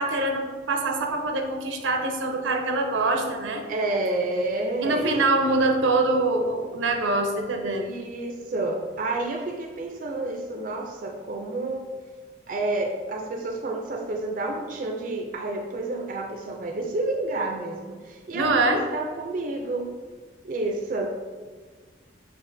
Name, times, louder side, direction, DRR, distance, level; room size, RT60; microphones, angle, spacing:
voice 1, 0.0-3.6 4.8-7.9 18.3-18.8, right 2 dB, 85° right, 4 dB, 0.6 m, -24 dB
voice 2, 3.7-5.3 7.8-11.9 12.5-19.9 20.4-21.1, right 2 dB, 45° right, 2 dB, 0.3 m, -30 dB
7.0 x 2.5 x 2.5 m, 1.5 s
head